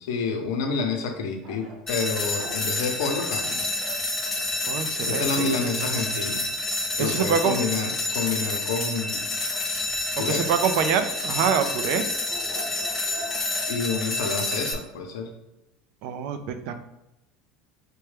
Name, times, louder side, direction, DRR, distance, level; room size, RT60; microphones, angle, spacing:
voice 1, 0.0-3.7 5.1-6.5 7.0-9.3 10.2-10.5 13.7-15.3, left 4 dB, 90° left, 4 dB, 0.7 m, -29 dB
sound 1, 1.4-4.1 9.4-10.3 11.3-14.1, equal, 40° right, 0.9 m, -43 dB
sound 2, 1.9-14.7, left 2 dB, 15° left, 0.6 m, -28 dB
voice 2, 4.7-5.3 7.0-7.6 10.3-12.0 16.0-16.8, right 7 dB, 65° right, 8 dB, 0.4 m, -25 dB
4.5 x 2.2 x 3.2 m, 0.91 s
supercardioid pair, 130°, 2 cm